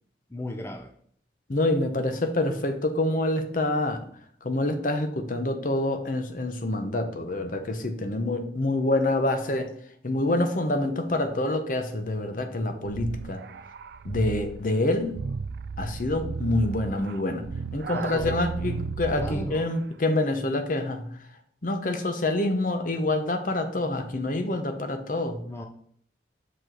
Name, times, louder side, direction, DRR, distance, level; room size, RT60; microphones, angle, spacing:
voice 1, 0.3-0.9 17.9-18.4 19.2-19.7 25.4-25.7, left 1 dB, 15° left, 4 dB, 0.4 m, -36 dB
voice 2, 1.5-4.0 4.4-9.7 10.0-13.4 14.0-15.2 15.8-17.5 17.7-21.1 21.6-25.4, left 2 dB, 45° left, 7 dB, 0.7 m, -26 dB
sound 1, 12.9-19.7, right 5 dB, 60° right, 0.3 m, -34 dB
6.2 x 5.2 x 3.9 m, 0.62 s
head